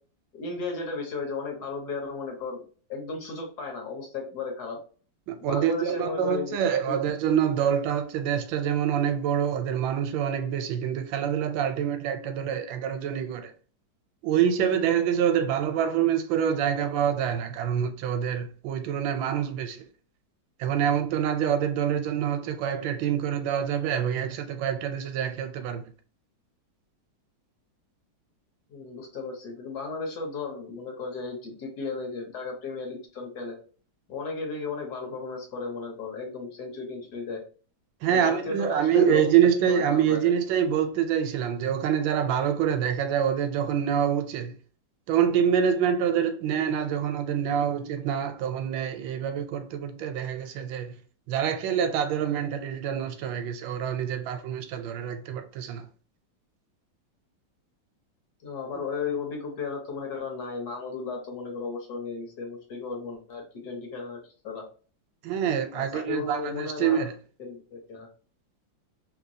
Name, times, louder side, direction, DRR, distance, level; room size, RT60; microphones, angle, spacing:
voice 1, 0.3-2.6 2.9-4.8 5.4-6.6 6.9-7.0 28.7-33.6 34.1-37.4 38.1-39.3 39.7-40.3 58.4-64.6 65.7-67.1 67.4-68.1, left 4 dB, 60° left, 1.4 m, -35 dB
voice 2, 5.3-13.5 14.2-19.9 20.6-25.9 38.0-44.5 45.1-50.9 51.3-55.9 65.2-67.1, right 8 dB, 85° right, 1.3 m, -26 dB
3.3 x 2.9 x 2.7 m
omnidirectional pair, 2.1 m